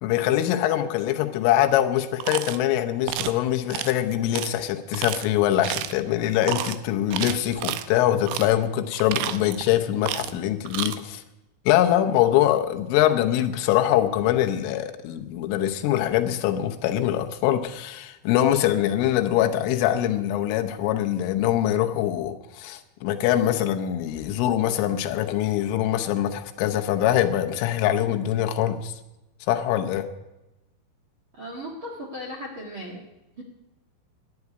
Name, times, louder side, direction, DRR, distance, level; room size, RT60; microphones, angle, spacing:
voice 1, 0.0-11.2 11.7-28.9 29.5-30.1, left 12 dB, 85° left, 6 dB, 3.5 m, -23 dB
sound 1, 2.2-2.6 3.1-3.4 3.7-3.9 4.3-4.5 4.9-5.2 5.6-6.0 6.4-6.8 7.1-7.9 8.3-8.5 8.9-9.7 10.0-10.4 10.7-11.0, right 13 dB, 80° right, 2.5 m, -30 dB
voice 2, 31.3-33.0 33.3-33.4, equal, 50° right, -1 dB, 1.5 m, -36 dB
12.0 x 9.4 x 9.7 m, 0.98 s
omnidirectional pair, 5.6 m